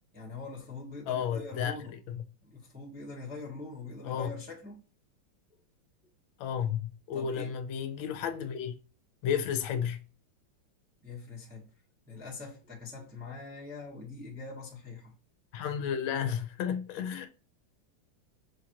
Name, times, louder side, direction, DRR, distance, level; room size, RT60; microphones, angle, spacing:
voice 1, 0.1-2.0 2.4-4.8 7.1-7.5 11.0-11.7 12.1-15.1, left 3 dB, 5° right, 0.7 m, -43 dB
voice 2, 1.1-1.7 2.1-2.2 4.0-4.3 6.4-8.7 9.2-10.0 15.5-17.3, left 8 dB, 75° left, 1.3 m, -32 dB
5.6 x 2.5 x 2.8 m
omnidirectional pair, 2.3 m